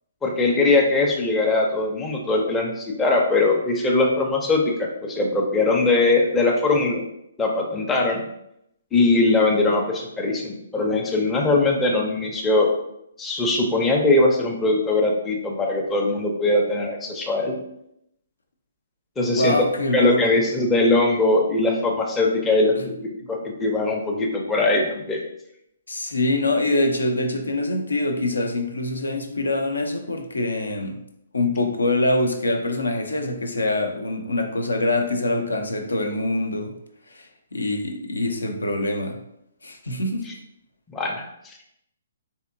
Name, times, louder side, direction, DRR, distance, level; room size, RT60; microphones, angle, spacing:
voice 1, 0.2-7.0 7.4-8.2 8.9-12.7 13.2-17.6 19.2-19.6 19.9-23.0 23.3-25.2 40.3-40.4 40.9-41.5, left 2 dB, 10° left, -1 dB, 0.5 m, -21 dB
voice 2, 19.3-20.2 22.8-22.9 25.9-31.0 31.3-36.7 37.1-39.2 39.6-40.4, left 2 dB, 80° left, 5 dB, 0.5 m, -24 dB
3.5 x 2.7 x 2.6 m, 0.79 s
figure-of-eight pair, 130°, 0 cm